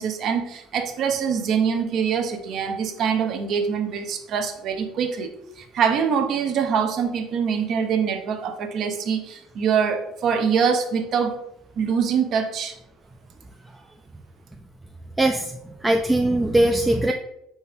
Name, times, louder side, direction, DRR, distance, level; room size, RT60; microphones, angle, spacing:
voice 1, 0.0-11.4 11.8-12.7, right 6 dB, 55° right, 7 dB, 0.6 m, -24 dB
voice 2, 15.2-17.1, right 1 dB, 10° right, 3 dB, 0.3 m, -21 dB
4.2 x 3.4 x 3.4 m, 0.81 s
cardioid pair, 120°, 0 cm